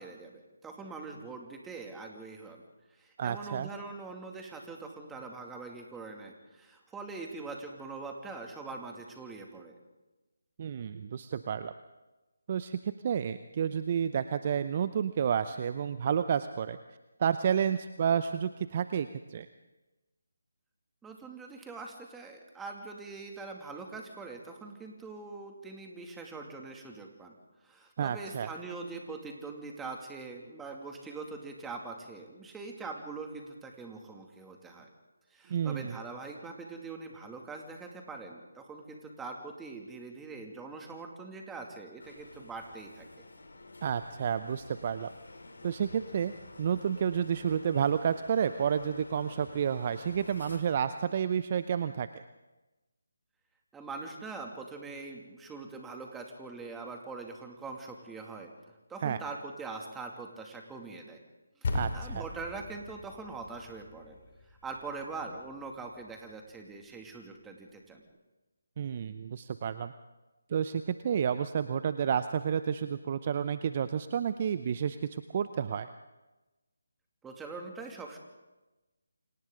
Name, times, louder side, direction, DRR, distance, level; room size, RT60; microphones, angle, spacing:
voice 1, 0.0-2.6 2.9-9.8 21.0-27.3 27.6-34.9 35.3-43.1 53.7-58.5 58.9-61.2 61.6-64.2 64.6-68.0 77.2-78.2, right 3 dB, 5° right, 2 dB, 2.4 m, -43 dB
voice 2, 3.2-3.7 10.6-11.7 12.5-16.8 17.2-19.5 28.0-28.5 35.5-36.0 43.8-45.1 45.6-46.3 46.6-52.2 59.0-59.2 61.7-62.2 68.8-69.9 70.5-75.9, right 8 dB, 35° right, 12 dB, 0.7 m, -30 dB
sound 1, 42.0-50.6, left 2 dB, 70° left, 4.9 m, -50 dB
sound 2, 61.6-66.2, left 3 dB, 50° left, 5.8 m, -39 dB
29.0 x 26.0 x 3.9 m, 1.1 s
figure-of-eight pair, 155°, 0 cm